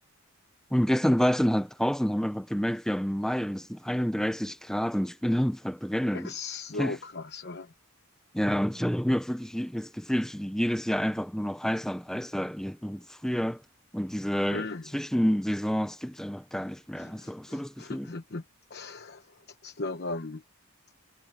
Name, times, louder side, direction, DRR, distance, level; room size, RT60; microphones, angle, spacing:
voice 1, 0.7-6.3 6.8-7.0 8.3-13.6 13.9-14.7 14.9-18.1, equal, ahead, 0.6 m, -28 dB
voice 2, 6.1-7.7 14.5-14.9 17.0-18.4 18.7-20.4, left 3 dB, 50° left, 1.0 m, -37 dB
head